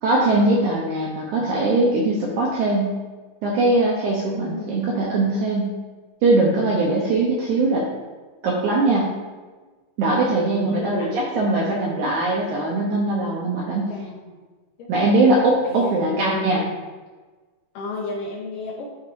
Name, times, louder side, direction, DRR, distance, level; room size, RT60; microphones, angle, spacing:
voice 1, 0.0-2.9 3.4-5.7 6.2-7.9 8.4-9.1 10.0-13.9 14.9-16.6, right 2 dB, 80° right, -3 dB, 1.8 m, -21 dB
voice 2, 4.3-4.9 10.1-11.7 13.9-14.4 14.8-14.9 15.6-16.2 17.7-18.9, left 2 dB, 70° left, -3 dB, 2.2 m, -34 dB
11.5 x 4.6 x 2.6 m, 1.3 s
omnidirectional pair, 4.5 m